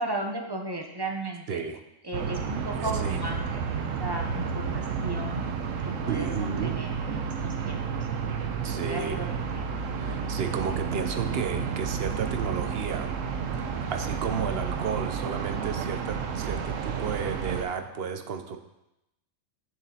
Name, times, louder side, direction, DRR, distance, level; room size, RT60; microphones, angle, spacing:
voice 1, 0.0-1.6 2.0-5.4 5.8-6.3 6.6-8.1 8.6-9.3 9.5-9.7 14.5-14.9, right 2 dB, 30° right, 2 dB, 0.4 m, -35 dB
voice 2, 1.5-1.8 2.6-3.2 6.1-6.7 8.6-9.2 10.0-13.1 13.9-18.6, right 6 dB, 60° right, 7 dB, 0.7 m, -33 dB
sound 1, 2.1-17.6, right 6 dB, 80° right, 1.1 m, -31 dB
8.8 x 7.0 x 2.8 m, 0.88 s
omnidirectional pair, 1.3 m